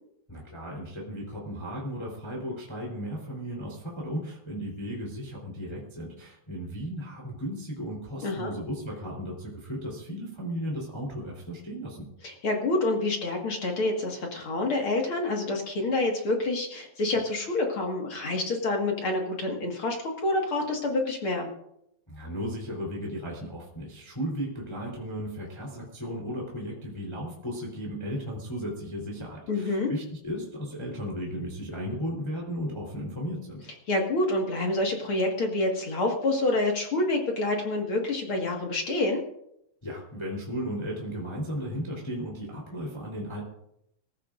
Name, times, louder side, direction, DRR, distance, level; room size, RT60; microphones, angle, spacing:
voice 1, 0.3-12.1 22.1-33.7 39.8-43.4, equal, 5° left, -2 dB, 3.2 m, -35 dB
voice 2, 12.2-21.5 29.5-29.9 33.9-39.2, left 2 dB, 45° left, 1 dB, 2.1 m, -27 dB
25.0 x 15.0 x 2.6 m, 0.77 s
omnidirectional pair, 4.2 m